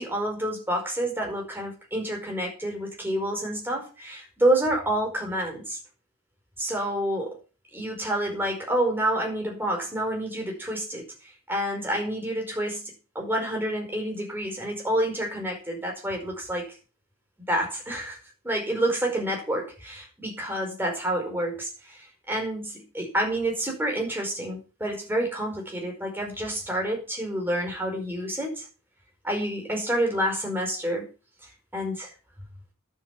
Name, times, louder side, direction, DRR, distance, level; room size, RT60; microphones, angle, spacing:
voice 1, 0.0-5.8 6.6-7.3 7.7-11.1 11.5-16.7 17.5-18.2 18.4-28.6 29.2-31.1 31.7-32.1, right 1 dB, 10° right, 0 dB, 4.9 m, -28 dB
11.5 x 7.7 x 6.0 m, 0.34 s
head